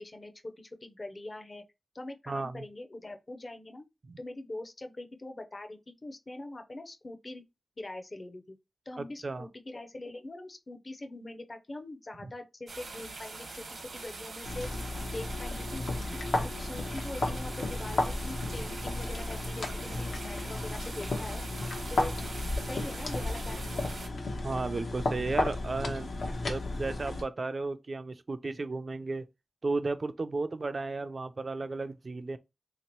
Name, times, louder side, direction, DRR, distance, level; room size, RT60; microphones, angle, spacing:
voice 1, 0.0-1.6 1.9-3.8 4.2-7.4 7.8-8.4 8.9-14.8 15.1-16.0 16.4-21.4 21.9-22.1 22.6-23.9, left 2 dB, 35° left, 0.5 m, -43 dB
voice 2, 2.3-2.7 4.1-4.2 9.0-9.5 18.4-18.5 24.4-26.1 26.5-29.3 29.6-32.4, right 3 dB, 45° right, 0.3 m, -34 dB
sound 1, 12.7-24.1, right 3 dB, 85° right, 0.9 m, -43 dB
sound 2, 14.4-27.2, left 2 dB, 85° left, 0.8 m, -33 dB
3.3 x 2.9 x 2.9 m
wide cardioid pair, 115°, 0 cm